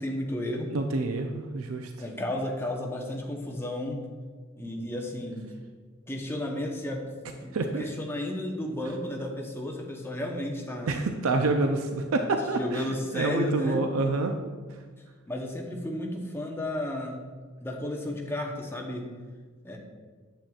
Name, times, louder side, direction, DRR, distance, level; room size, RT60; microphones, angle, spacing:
voice 1, 0.0-0.7 2.0-4.0 4.6-5.5 6.1-7.1 7.4-11.0 12.5-13.8 15.3-17.2 17.6-19.1 19.6-19.8, left 1 dB, 10° left, 0 dB, 0.8 m, -33 dB
voice 2, 0.7-1.9 7.5-7.8 10.9-12.9 13.1-14.3, right 3 dB, 85° right, 5 dB, 0.5 m, -27 dB
8.8 x 7.5 x 2.4 m, 1.5 s
head